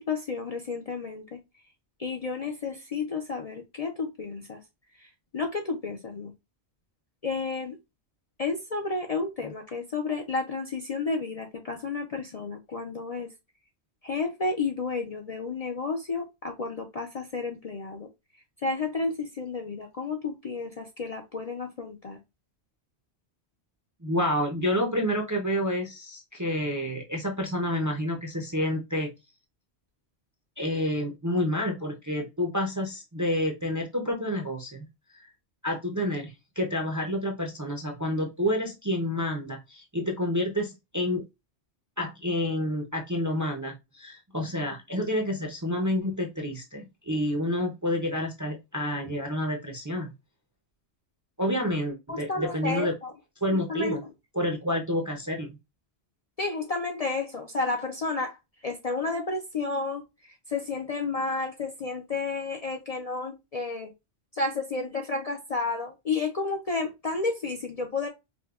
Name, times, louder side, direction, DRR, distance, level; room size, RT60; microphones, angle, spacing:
voice 1, 0.0-1.4 2.0-4.6 5.3-6.3 7.2-7.8 8.4-13.3 14.0-18.1 18.6-22.2 52.1-53.1 53.5-54.0 56.4-58.4 58.6-60.0 60.5-63.9 64.3-68.1, left 3 dB, 45° left, 0.5 m, -31 dB
voice 2, 24.0-29.1 30.6-34.9 35.1-35.3 35.6-41.2 42.0-50.1 51.4-52.9 53.4-54.0 54.3-55.6, left 1 dB, 25° right, 0.4 m, -29 dB
5.1 x 2.2 x 2.3 m
omnidirectional pair, 1.2 m